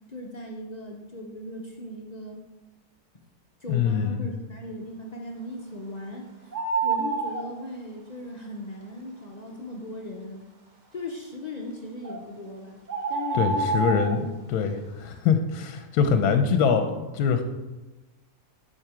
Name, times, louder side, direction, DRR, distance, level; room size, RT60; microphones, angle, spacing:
voice 1, 0.1-2.4 3.6-6.6 6.8-10.4 10.9-12.8 13.1-14.3, left 1 dB, 45° left, 0 dB, 0.5 m, -38 dB
voice 2, 3.7-4.3 13.3-14.2 14.5-17.4, left 6 dB, 80° left, 7 dB, 1.1 m, -23 dB
sound 1, 6.5-7.4 12.0-12.2 12.9-14.1, right 4 dB, 40° right, 0.7 m, -27 dB
7.5 x 4.7 x 4.9 m, 1.1 s
omnidirectional pair, 1.6 m